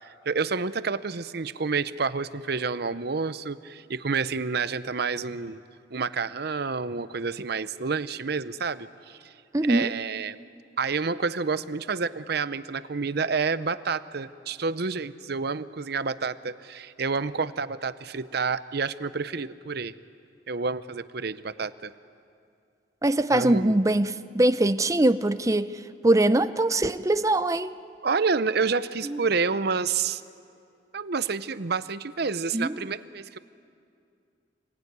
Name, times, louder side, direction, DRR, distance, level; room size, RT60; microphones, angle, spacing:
voice 1, 0.0-5.6 5.9-9.3 9.6-10.4 10.8-19.9 20.5-21.9 23.3-23.8 28.0-30.2 30.9-33.4, right 4 dB, 55° right, 14 dB, 0.7 m, -29 dB
voice 2, 9.5-9.9 23.0-27.8 29.0-29.2 32.5-32.7, right 1 dB, 15° right, 12 dB, 0.6 m, -22 dB
27.0 x 21.0 x 9.5 m, 2.4 s
head